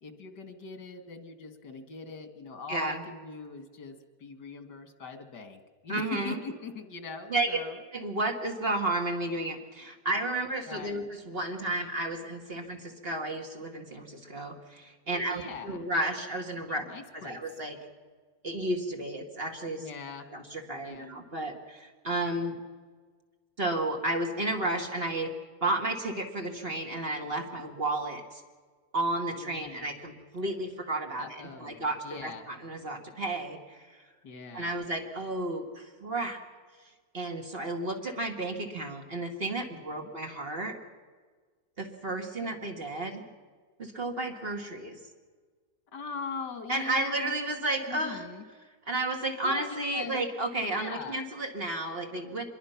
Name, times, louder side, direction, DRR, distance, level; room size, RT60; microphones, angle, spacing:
voice 1, 0.0-7.8 10.7-11.0 15.1-15.8 16.7-17.4 19.8-20.3 20.8-21.1 29.4-29.8 31.2-32.5 34.2-34.8 39.7-40.1 45.9-47.3 47.9-48.5 49.4-50.2 50.7-51.2, left 4 dB, 80° left, 8 dB, 2.3 m, -41 dB
voice 2, 2.7-3.0 5.9-6.4 7.3-7.5 7.9-16.9 17.1-17.8 18.4-19.8 20.3-22.6 23.6-25.3 25.6-28.4 28.9-34.0 34.5-36.4 37.1-40.8 41.8-43.2 43.8-45.0 46.7-48.2 48.9-52.4, right 2 dB, 35° right, 3 dB, 2.3 m, -32 dB
25.0 x 22.0 x 5.8 m, 1.5 s
omnidirectional pair, 1.8 m